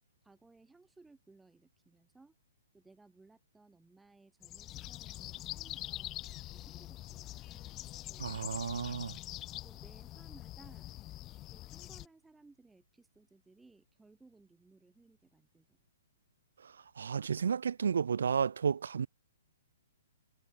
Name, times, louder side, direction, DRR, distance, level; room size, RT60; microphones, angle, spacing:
voice 1, 0.2-2.3 2.7-7.8 8.1-8.4 9.5-10.9 11.5-15.8, right 3 dB, 5° right, 6.9 m, -62 dB
sound 1, 4.4-12.1, left 15 dB, 15° left, 0.9 m, -45 dB
voice 2, 8.2-9.1 17.0-19.1, right 6 dB, 80° right, 0.9 m, -32 dB
hypercardioid pair, 175°, 0 cm